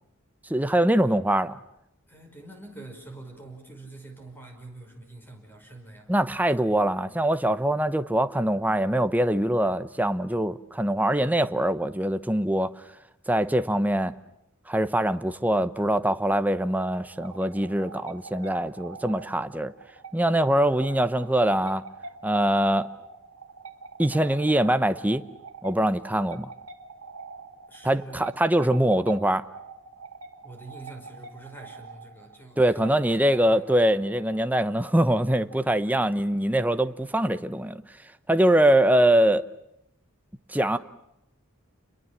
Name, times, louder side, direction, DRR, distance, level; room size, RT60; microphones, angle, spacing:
voice 1, 0.5-1.5 6.1-12.7 13.3-14.1 14.7-19.7 20.1-21.8 22.2-22.9 24.0-25.2 25.6-26.5 27.8-29.4 32.6-37.8 38.3-39.5 40.5-40.8, right 1 dB, 10° right, 0.9 m, -23 dB
voice 2, 2.1-6.1 27.7-28.3 30.4-33.8, right 2 dB, 10° left, 5.5 m, -45 dB
sound 1, 16.9-36.3, right 4 dB, 80° right, 2.1 m, -45 dB
29.5 x 22.5 x 7.4 m
head